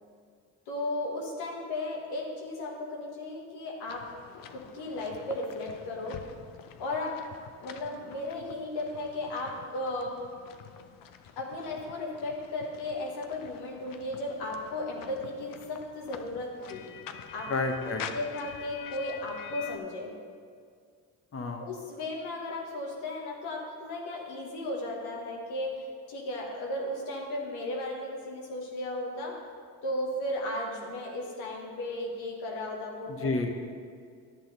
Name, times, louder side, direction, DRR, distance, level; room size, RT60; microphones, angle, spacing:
voice 1, 0.7-4.1 4.5-6.2 6.8-7.2 7.6-10.2 11.4-16.9 17.3-17.5 18.1-20.1 21.6-25.8 26.1-29.4 29.8-33.3, left 1 dB, 85° left, -1 dB, 1.3 m, -35 dB
sound 1, 3.9-19.8, left 8 dB, 60° left, 0.6 m, -47 dB
voice 2, 17.5-18.0 21.3-21.6 33.1-33.5, left 3 dB, 35° left, 3 dB, 1.1 m, -30 dB
10.0 x 6.1 x 3.9 m, 2.1 s
supercardioid pair, 55°, 39 cm